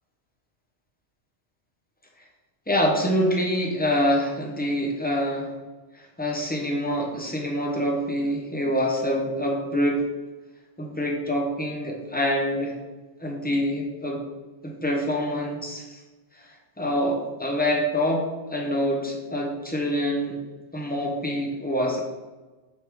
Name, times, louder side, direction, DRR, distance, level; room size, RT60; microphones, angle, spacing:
voice 1, 2.7-5.5 5.9-10.0 10.8-12.7 13.2-14.2 14.6-16.0 16.3-20.4 20.7-22.0, equal, 10° left, -1 dB, 1.0 m, -26 dB
5.4 x 5.2 x 4.8 m, 1.2 s
omnidirectional pair, 1.1 m